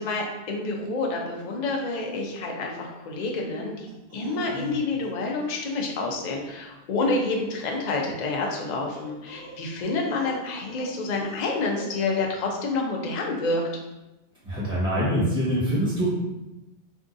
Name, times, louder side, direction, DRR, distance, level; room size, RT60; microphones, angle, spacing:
voice 1, 0.0-13.6, left 3 dB, 50° left, 0 dB, 0.6 m, -28 dB
sound 1, 3.9-5.0 5.4-5.6 7.6-7.7 8.4-11.4 11.7-12.2, equal, 55° right, 1.6 m, -42 dB
voice 2, 14.4-16.1, equal, 10° right, -9 dB, 1.0 m, -24 dB
4.5 x 2.4 x 2.6 m, 0.99 s
omnidirectional pair, 1.2 m